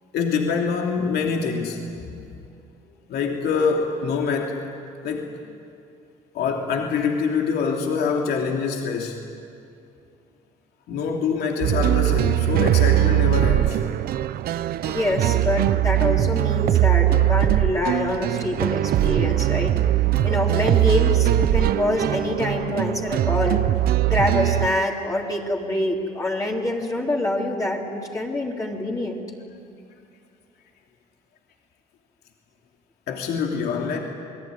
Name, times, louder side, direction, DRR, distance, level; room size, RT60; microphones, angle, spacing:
voice 1, 0.1-2.2 3.1-4.6 5.0-5.3 6.3-9.2 10.9-13.8 33.1-34.0, left 5 dB, 70° left, 1 dB, 3.0 m, -25 dB
sound 1, 11.6-24.7, right 13 dB, 65° right, 0.7 m, -21 dB
voice 2, 14.8-19.8 20.2-23.6 24.1-29.2, left 1 dB, 20° left, -2 dB, 3.2 m, -25 dB
29.0 x 20.0 x 9.8 m, 2.5 s
cardioid pair, 110°, 17 cm